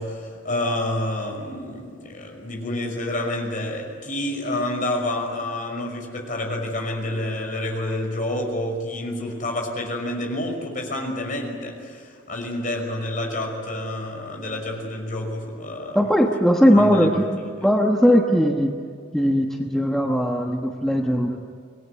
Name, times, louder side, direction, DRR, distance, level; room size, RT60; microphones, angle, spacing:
voice 1, 0.0-16.0 16.7-17.1, left 1 dB, 40° left, 1 dB, 5.7 m, -28 dB
voice 2, 15.9-17.3 17.6-18.7 19.1-21.4, equal, ahead, 1 dB, 1.1 m, -19 dB
26.5 x 20.0 x 9.7 m, 2.2 s
head